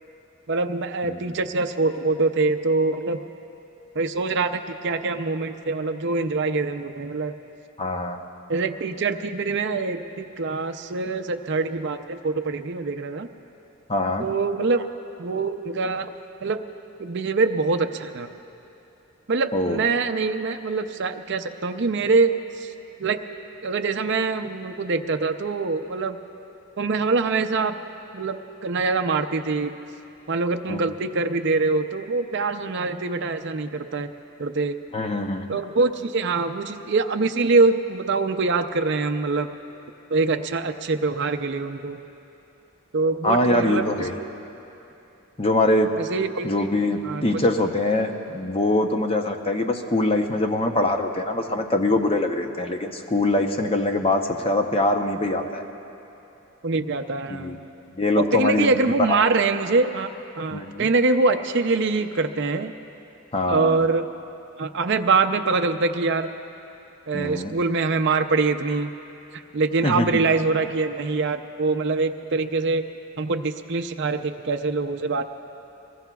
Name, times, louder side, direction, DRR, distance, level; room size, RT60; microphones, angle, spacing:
voice 1, 0.5-3.2 3.9-7.3 8.5-13.3 14.2-14.9 15.2-16.1 16.4-16.6 17.0-18.3 19.3-22.7 23.0-23.2 23.6-26.2 26.8-27.8 28.1-29.8 30.3-34.1 34.4-34.8 35.5-39.5 40.1-42.0 42.9-44.3 46.0-46.5 47.0-47.2 56.6-57.6 58.2-62.7 63.5-64.1 64.6-66.3 67.1-68.9 69.3-72.8 73.2-75.2, right 3 dB, 50° right, 7 dB, 0.5 m, -24 dB
voice 2, 7.8-8.2 13.9-14.3 19.5-19.8 30.7-30.8 34.9-35.4 43.2-44.2 45.4-45.9 46.4-55.6 57.3-57.6 58.0-59.2 60.5-60.9 63.3-63.8 67.1-67.5 69.8-70.3, left 1 dB, 25° left, 5 dB, 0.7 m, -23 dB
23.0 x 21.0 x 2.3 m, 2.9 s
head